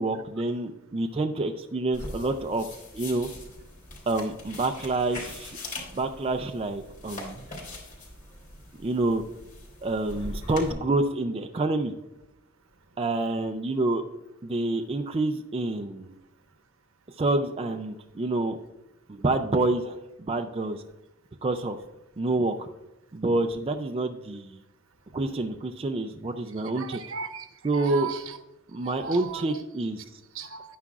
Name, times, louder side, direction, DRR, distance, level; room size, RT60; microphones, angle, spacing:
voice 1, 0.0-2.7 2.9-3.3 4.1-5.6 5.9-7.5 8.8-9.2 9.8-11.9 13.0-14.0 14.4-16.2 17.2-18.6 19.1-20.8 21.4-21.8 22.2-22.7 23.1-24.6 25.1-27.0 27.6-28.1 28.7-30.2, right 2 dB, 25° right, 5 dB, 0.4 m, -28 dB
sound 1, 1.9-10.7, left 2 dB, 35° left, 3.1 m, -41 dB
voice 2, 26.7-28.4 28.8-29.6 30.3-30.8, right 6 dB, 65° right, 7 dB, 0.9 m, -37 dB
11.0 x 9.7 x 2.4 m, 0.93 s
head